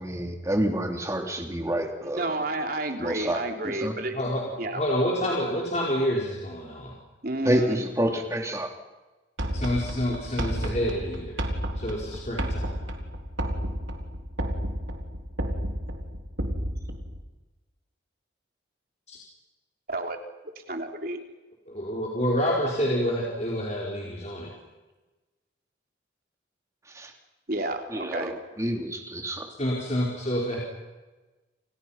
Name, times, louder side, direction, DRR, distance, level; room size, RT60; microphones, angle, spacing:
voice 1, 0.0-2.4 3.0-3.4 3.6-3.9 7.4-8.7 26.9-27.1 27.9-29.5, equal, 15° right, 3 dB, 3.2 m, -28 dB
voice 2, 2.2-4.2 4.6-4.8 7.2-7.8 19.9-20.2 20.7-21.2 27.5-28.3, right 2 dB, 50° right, 4 dB, 3.4 m, -31 dB
voice 3, 4.1-7.0 9.5-11.4 11.7-12.8 19.1-19.2 21.7-24.5 29.6-30.6, equal, 35° left, -3 dB, 4.9 m, -28 dB
sound 1, 9.4-17.2, equal, 75° right, 4.0 m, -32 dB
30.0 x 29.5 x 5.9 m, 1.2 s
head